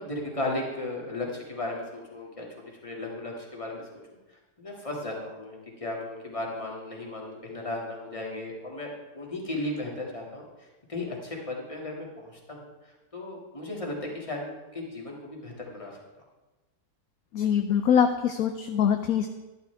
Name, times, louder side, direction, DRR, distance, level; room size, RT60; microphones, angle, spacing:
voice 1, 0.0-4.0 4.3-16.0, left 2 dB, 20° left, -2 dB, 2.3 m, -36 dB
voice 2, 17.3-19.3, left 8 dB, 65° left, 7 dB, 1.0 m, -23 dB
12.0 x 11.5 x 3.5 m, 1.1 s
omnidirectional pair, 1.9 m